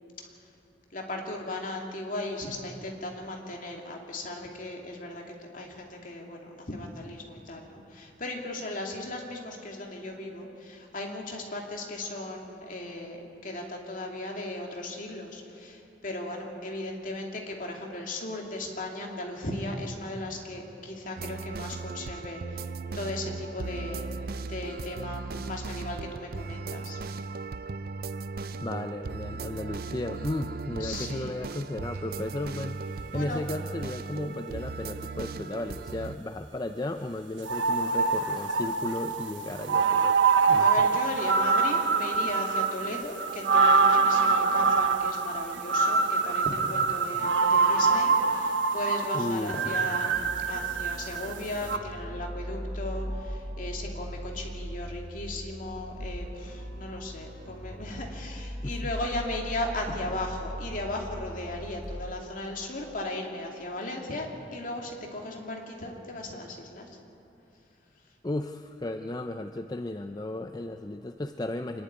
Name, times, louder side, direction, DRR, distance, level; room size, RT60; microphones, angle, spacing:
voice 1, 0.9-22.7 22.9-24.1 24.4-27.0 30.8-31.4 33.1-33.4 40.6-67.0, left 1 dB, 45° left, 1 dB, 2.7 m, -36 dB
sound 1, 21.2-36.2, right 4 dB, 50° right, 0.5 m, -37 dB
voice 2, 28.6-40.2 40.5-40.9 49.1-49.5 58.6-58.8 68.2-71.8, left 1 dB, 20° left, 7 dB, 0.5 m, -34 dB
sound 2, 37.5-51.4 51.6-51.8, right 4 dB, 90° right, 1.0 m, -25 dB
sound 3, 50.1-61.9, equal, 70° right, 4.8 m, -39 dB
25.0 x 11.5 x 9.7 m, 2.7 s
head